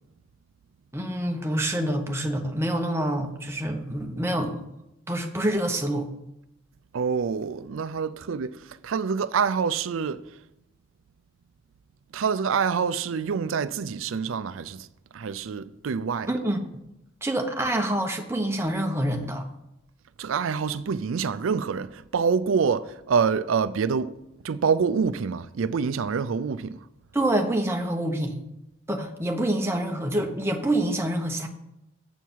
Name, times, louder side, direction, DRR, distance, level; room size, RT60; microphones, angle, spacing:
voice 1, 0.9-4.6 5.1-6.1 16.3-16.7 17.2-19.5 27.1-28.4 28.9-31.5, right 1 dB, 15° right, 0.8 m, -26 dB
voice 2, 6.9-8.6 8.8-10.2 12.1-14.9 15.1-16.3 20.2-24.1 24.4-26.8, right 6 dB, 85° right, 0.4 m, -26 dB
7.9 x 4.6 x 7.2 m
head